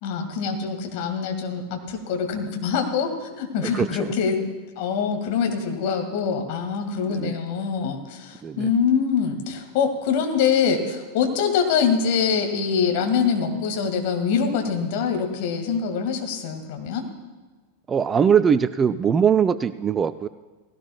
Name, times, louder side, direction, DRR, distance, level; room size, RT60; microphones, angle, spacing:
voice 1, 0.0-4.5 4.8-17.1, left 6 dB, 45° left, 3 dB, 2.1 m, -24 dB
voice 2, 3.6-4.1 7.1-7.3 8.4-8.7 17.9-20.3, right 7 dB, 20° right, 13 dB, 0.4 m, -21 dB
18.5 x 16.5 x 2.3 m, 1.3 s
figure-of-eight pair, 90°, 0 cm